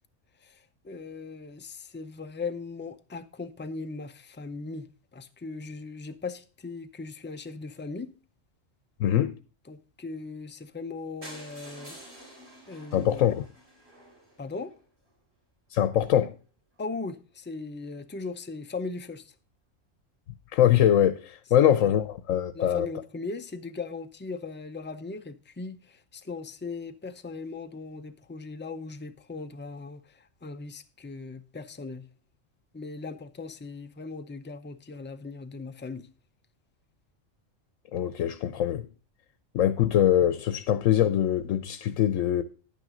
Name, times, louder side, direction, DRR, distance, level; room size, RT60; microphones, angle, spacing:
voice 1, 0.4-8.1 9.7-12.0 12.7-13.2 14.4-14.7 16.8-19.3 21.6-21.9 22.5-32.1 32.7-36.1, left 4 dB, 20° left, 0.3 m, -38 dB
voice 2, 9.0-9.3 12.9-13.5 15.7-16.3 20.5-22.9 37.9-38.9 39.5-42.4, left 10 dB, 85° left, 1.1 m, -23 dB
sound 1, 11.2-15.1 15.7-15.8 16.1-16.2 16.5-16.6 16.7-16.8, right 1 dB, 55° right, 4.8 m, -49 dB
10.5 x 9.2 x 3.8 m
omnidirectional pair, 1.3 m